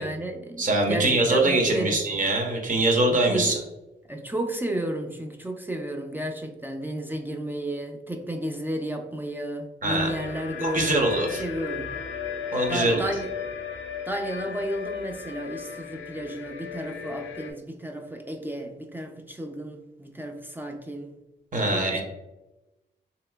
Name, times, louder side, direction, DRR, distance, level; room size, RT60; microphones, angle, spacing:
voice 1, 0.0-2.0 3.1-3.6 4.1-12.0 12.7-13.3 14.1-21.1 21.7-22.0, right 1 dB, 10° right, 3 dB, 0.4 m, -33 dB
voice 2, 0.6-3.6 9.8-10.1 10.6-11.4 12.5-13.1 21.5-22.0, right 2 dB, 40° right, 1 dB, 0.8 m, -23 dB
sound 1, 10.0-17.5, left 6 dB, 85° left, 0.5 m, -36 dB
3.2 x 2.8 x 2.2 m, 0.98 s
cardioid pair, 90°, 20 cm